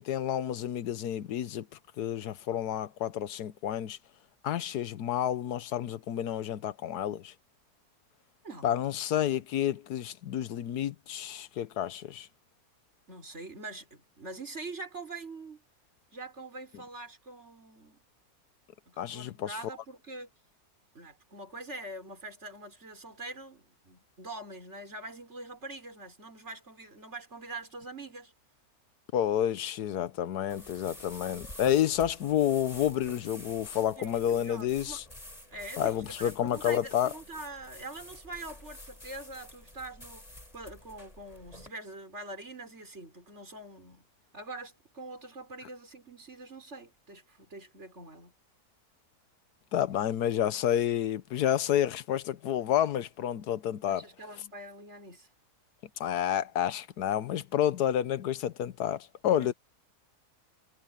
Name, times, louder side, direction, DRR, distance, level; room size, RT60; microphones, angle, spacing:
voice 1, 0.0-1.7 2.0-4.0 4.4-7.3 8.6-12.3 19.0-19.6 29.1-35.0 35.8-37.1 49.7-54.0 56.0-59.5, left 10 dB, 80° left, 1.4 m, -30 dB
voice 2, 8.4-8.9 13.1-15.6 16.1-18.0 18.9-20.3 20.9-28.3 34.0-35.0 35.5-44.1 44.3-48.3 53.9-55.3 59.4-59.5, right 2 dB, 45° right, 6.2 m, -44 dB
sound 1, 30.5-41.7, left 1 dB, 20° left, 5.4 m, -48 dB
omnidirectional pair, 1.7 m